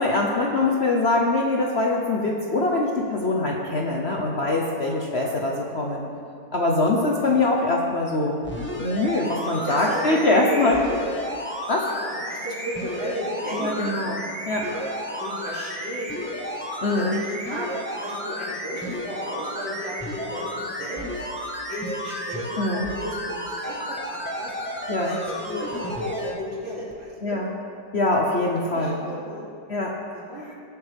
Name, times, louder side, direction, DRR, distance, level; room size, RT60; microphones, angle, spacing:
voice 1, 0.0-6.0 6.5-8.4 8.8-10.8 11.7-11.9 13.5-14.7 16.8-17.2 22.6-22.9 24.9-25.2 27.2-27.5 27.9-29.0 29.7-29.9 30.4-30.5, left 2 dB, 45° left, -1 dB, 1.0 m, -23 dB
voice 2, 0.5-0.8 1.6-1.7 5.1-5.7 6.0-6.1 7.2-7.4 9.4-10.2 10.5-11.0 11.8-14.1 14.6-14.8 15.2-16.5 16.9-17.7 18.0-21.1 21.7-24.5 25.0-27.4 28.7-29.4 30.1-30.4, equal, 60° right, -6 dB, 3.4 m, -34 dB
sound 1, 8.4-26.3 26.9-27.0, equal, 5° left, 1.1 m, -32 dB
19.5 x 8.1 x 3.5 m, 2.6 s
omnidirectional pair, 1.9 m